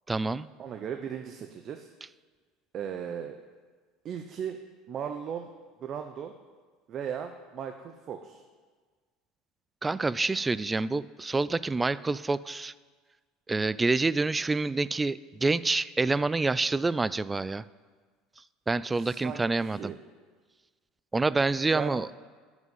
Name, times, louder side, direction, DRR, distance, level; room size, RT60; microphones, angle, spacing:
voice 1, 0.1-0.5 9.8-12.7 13.5-17.6 18.7-19.9 21.1-22.1, right 3 dB, 15° right, 18 dB, 0.3 m, -27 dB
voice 2, 0.6-1.9 2.7-3.4 4.0-4.6 4.9-5.5 5.8-6.3 6.9-8.4 18.9-20.0 21.7-22.0, right 8 dB, 40° right, 5 dB, 0.8 m, -37 dB
13.0 x 6.2 x 9.4 m, 1.5 s
supercardioid pair, 115°, 0 cm